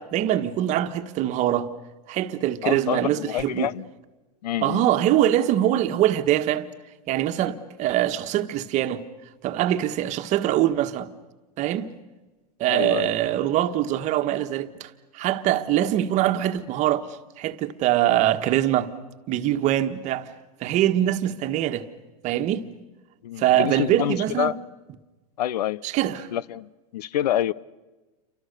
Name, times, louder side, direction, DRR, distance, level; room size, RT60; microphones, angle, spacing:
voice 1, 0.0-1.7 2.1-3.7 4.6-6.7 7.1-9.0 9.4-11.1 11.6-11.9 12.6-17.1 17.4-18.9 19.3-20.3 20.6-21.9 22.2-22.7 23.4-24.5 25.8-26.3, right 12 dB, 35° right, 1.4 m, -23 dB
voice 2, 2.6-3.8 4.4-5.0 12.7-13.1 23.2-24.6 25.4-25.8 26.3-27.5, left 12 dB, 80° left, 0.8 m, -27 dB
29.5 x 24.5 x 6.7 m
supercardioid pair, 135°, 20 cm